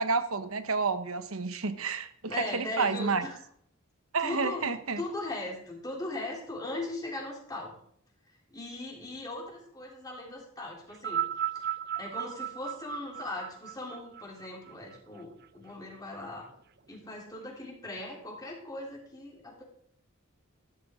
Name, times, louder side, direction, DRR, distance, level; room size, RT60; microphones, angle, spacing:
voice 1, 0.0-3.3 4.1-5.0, right 4 dB, 75° right, 11 dB, 1.1 m, -30 dB
voice 2, 2.3-3.4 4.2-4.7 5.0-7.8 8.5-11.3 11.5-11.6 11.9-16.5 16.9-19.6, left 2 dB, 15° left, -2 dB, 3.3 m, -39 dB
sound 1, 10.9-15.5 16.4-16.5, right 10 dB, 50° right, 0.5 m, -35 dB
13.0 x 11.5 x 3.8 m, 0.64 s
head